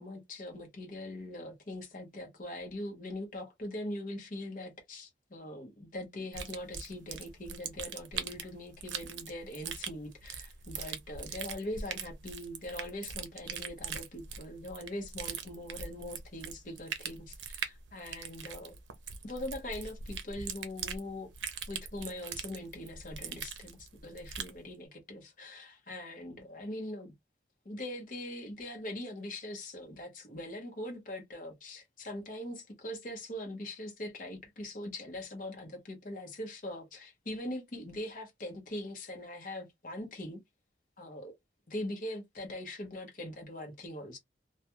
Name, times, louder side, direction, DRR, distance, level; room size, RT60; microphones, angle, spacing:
voice 1, 0.0-18.8 19.2-21.3 21.7-27.1 27.6-40.4 41.0-41.3 41.7-44.2, left 1 dB, 45° left, 0.8 m, -42 dB
sound 1, 6.3-24.6, right 7 dB, 90° right, 0.6 m, -41 dB
2.3 x 2.2 x 2.8 m
head